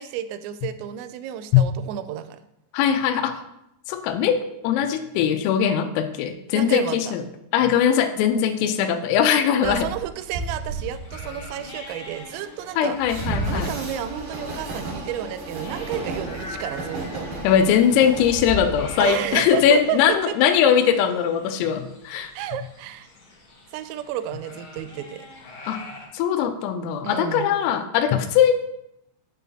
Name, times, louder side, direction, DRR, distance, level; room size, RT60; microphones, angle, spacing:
voice 1, 0.0-2.4 6.5-7.0 9.6-13.0 13.5-17.3 19.0-20.3 22.3-23.1 23.7-25.3 27.0-27.5, right 11 dB, 85° right, 11 dB, 3.2 m, -31 dB
voice 2, 2.7-3.4 3.9-7.3 7.5-9.9 12.8-13.7 17.4-22.3 25.7-25.8 26.1-28.5, left 8 dB, 85° left, 6 dB, 3.4 m, -20 dB
Train, 9.6-20.0, right 2 dB, 65° right, 2.3 m, -33 dB
sound 1, 10.2-26.1, left 3 dB, 70° left, 1.6 m, -44 dB
9.2 x 7.2 x 2.8 m, 0.82 s
omnidirectional pair, 5.9 m